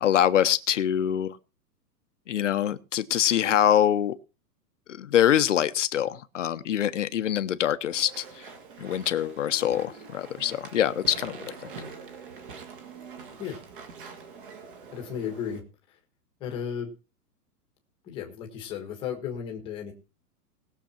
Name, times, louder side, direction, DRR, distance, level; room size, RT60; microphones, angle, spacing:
voice 1, 0.0-1.4 2.3-4.2 4.9-8.4 8.8-11.5, left 10 dB, 50° left, 12 dB, 0.9 m, -24 dB
Walk footsteps / Chatter / Squeak, 7.9-15.6, right 5 dB, 30° right, 1.7 m, -44 dB
voice 2, 14.9-15.6 15.9-16.0 16.4-16.9 18.0-19.9, left 8 dB, 10° left, 3 dB, 1.4 m, -34 dB
19.5 x 6.9 x 4.3 m, 0.33 s
hypercardioid pair, 180°, 49 cm